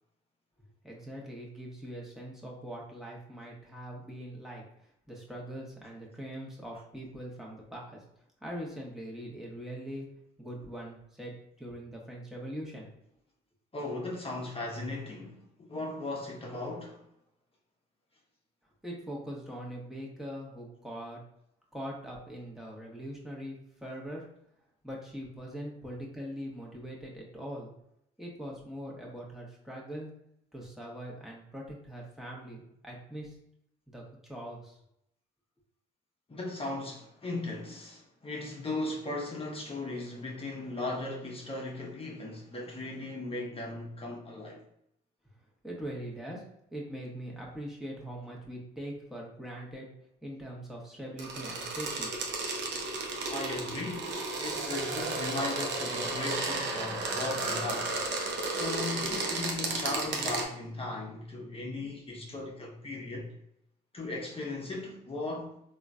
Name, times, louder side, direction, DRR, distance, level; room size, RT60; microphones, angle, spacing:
voice 1, 0.8-8.0 8.4-10.1 10.4-12.9 18.8-21.2 21.7-24.3 24.8-27.7 28.2-30.2 30.5-33.4 33.9-34.8 45.6-46.4 46.7-49.9 50.2-52.1, equal, ahead, 1.2 m, -42 dB
voice 2, 13.7-17.0 36.3-44.6 53.3-58.0 58.4-63.3 63.9-65.5, left 2 dB, 25° left, 1.0 m, -37 dB
sound 1, 51.2-60.4, right 3 dB, 60° right, 0.8 m, -33 dB
3.6 x 2.5 x 2.3 m
supercardioid pair, 60°, 21 cm